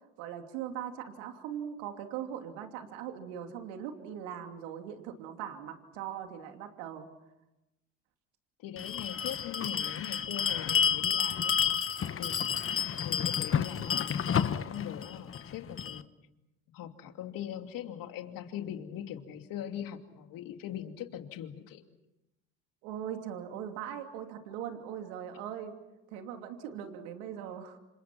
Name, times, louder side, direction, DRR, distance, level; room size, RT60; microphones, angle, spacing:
voice 1, 0.2-7.1 22.8-25.8 26.1-27.8, right 9 dB, 85° right, 5 dB, 2.8 m, -40 dB
voice 2, 8.6-11.6 12.2-12.4 13.0-14.1 14.5-16.1 16.7-21.8, left 10 dB, 65° left, 6 dB, 2.8 m, -41 dB
Bell, 8.8-16.0, left 8 dB, 35° left, 1.2 m, -30 dB
29.5 x 27.0 x 6.0 m, 0.95 s
supercardioid pair, 75°, 36 cm